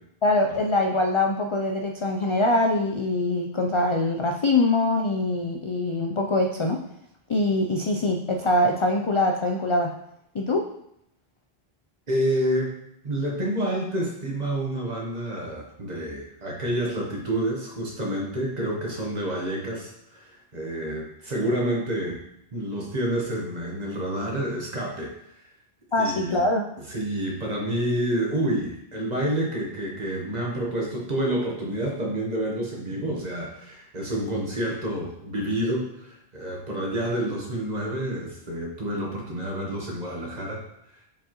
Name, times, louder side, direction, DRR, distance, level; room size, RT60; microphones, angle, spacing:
voice 1, 0.2-6.8 7.3-9.9 10.3-10.7 25.9-26.7, left 2 dB, 50° left, 3 dB, 0.3 m, -23 dB
voice 2, 12.1-12.7 13.0-22.2 22.5-25.1 26.0-26.4 26.9-40.6, right 1 dB, 40° right, -1 dB, 1.3 m, -28 dB
7.2 x 4.5 x 3.0 m, 0.76 s
omnidirectional pair, 1.1 m